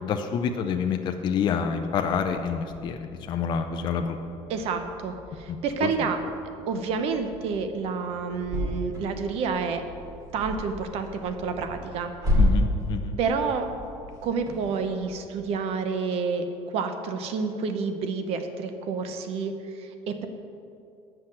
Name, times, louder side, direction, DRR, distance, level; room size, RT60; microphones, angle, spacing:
voice 1, 0.0-4.2 5.5-5.9 12.4-13.2, left 6 dB, 40° left, 5 dB, 0.5 m, -28 dB
sound 1, 2.8-15.5, left 1 dB, 30° right, 2.4 m, -33 dB
voice 2, 4.5-6.2 6.7-9.8 10.3-12.1 13.2-13.7 14.2-16.4 16.7-20.3, right 5 dB, 60° right, 8 dB, 0.9 m, -29 dB
7.7 x 5.8 x 7.7 m, 2.6 s
cardioid pair, 140°, 12 cm